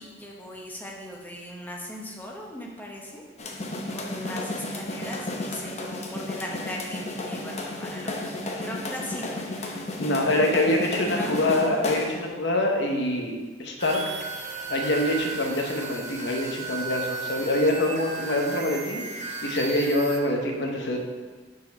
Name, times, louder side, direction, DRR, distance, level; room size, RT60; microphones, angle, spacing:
voice 1, 0.0-3.2 3.9-8.4 8.6-9.4 11.1-11.5, left 1 dB, 10° left, -1 dB, 0.9 m, -38 dB
sound 1, 3.4-12.3, left 2 dB, 40° left, 0.7 m, -33 dB
voice 2, 10.0-14.2 14.7-21.0, left 1 dB, 80° left, 1 dB, 0.9 m, -25 dB
sound 2, 13.8-20.2, right 3 dB, 40° right, 0.7 m, -35 dB
5.2 x 4.2 x 5.2 m, 1.4 s
head